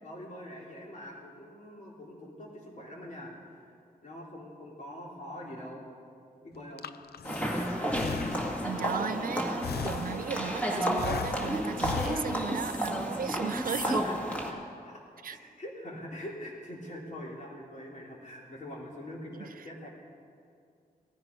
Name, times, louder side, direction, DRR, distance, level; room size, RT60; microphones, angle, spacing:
voice 1, 0.0-3.3 3.6-3.7 4.0-5.8 6.4-6.8 13.7-15.0 15.3-19.9, equal, 50° left, -3 dB, 3.5 m, -44 dB
Breathing, 6.6-8.9 9.6-10.5 11.0-12.8, left 8 dB, 85° left, 0.5 m, -38 dB
sound 1, 7.2-14.5, equal, 10° left, 1.7 m, -31 dB
voice 2, 8.6-14.0 15.2-15.4 19.3-19.7, right 7 dB, 65° right, 15 dB, 0.4 m, -36 dB
17.5 x 14.5 x 5.3 m, 2.3 s
wide cardioid pair, 140°, 16 cm